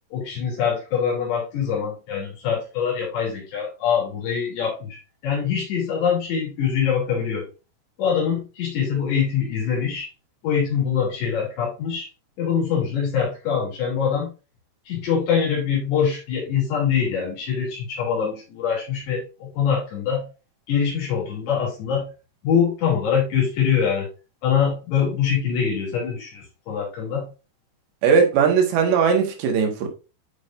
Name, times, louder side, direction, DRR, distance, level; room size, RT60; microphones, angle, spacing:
voice 1, 0.1-5.0 5.2-7.5 8.0-10.1 10.4-12.1 12.4-14.3 14.9-20.3 20.7-22.1 22.4-24.1 24.4-27.3, left 7 dB, 80° left, 5.2 m, -24 dB
voice 2, 28.0-29.9, right 6 dB, 90° right, 3.7 m, -19 dB
10.5 x 5.2 x 2.6 m
omnidirectional pair, 4.9 m